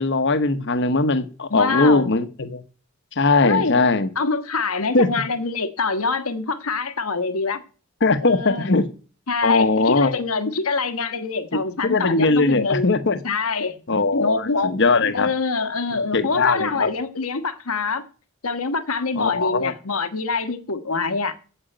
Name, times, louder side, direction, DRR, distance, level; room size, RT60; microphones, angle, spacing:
voice 1, 0.0-2.6 3.2-4.1 4.9-5.1 8.0-8.9 9.4-10.1 11.5-13.2 13.9-15.3 16.1-16.9 19.2-19.7, left 3 dB, 55° left, 1.1 m, -20 dB
voice 2, 1.5-2.2 3.4-3.9 4.1-7.6 8.2-8.7 9.3-12.9 13.2-13.7 14.1-14.7 15.1-18.0 18.4-21.3, left 4 dB, 85° left, 1.4 m, -25 dB
8.9 x 8.0 x 9.0 m
head